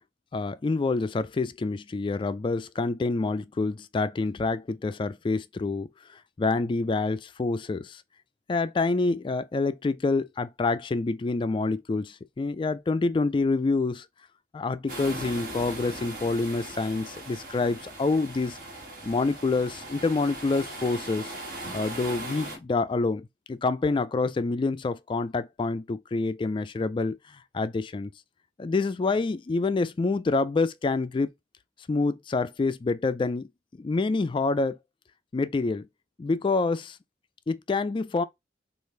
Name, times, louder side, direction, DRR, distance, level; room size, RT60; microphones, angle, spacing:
voice 1, 0.3-8.0 8.5-14.1 14.5-18.6 19.0-21.3 21.7-28.1 28.6-31.3 31.9-34.8 35.3-35.9 36.2-37.0 37.5-38.2, left 3 dB, 30° left, 0.3 m, -27 dB
sound 1, 14.9-22.6, right 2 dB, 50° right, 1.7 m, -39 dB
6.5 x 2.5 x 3.2 m
head